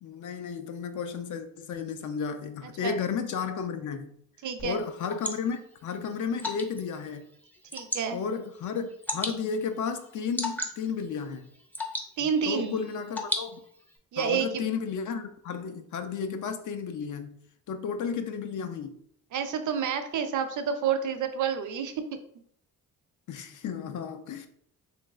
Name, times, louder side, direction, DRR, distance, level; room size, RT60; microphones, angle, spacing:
voice 1, 0.0-4.1 4.6-7.3 8.1-11.5 12.4-13.6 14.2-17.4 17.7-19.0 23.3-24.5, left 6 dB, 60° left, 0.5 m, -33 dB
voice 2, 4.4-4.8 7.7-8.2 12.2-12.7 14.1-14.6 19.3-22.2, right 7 dB, 60° right, 0.5 m, -29 dB
Water / Drip, 4.6-14.0, left 1 dB, 5° left, 0.4 m, -38 dB
3.1 x 3.1 x 2.3 m
cardioid pair, 90°, 35 cm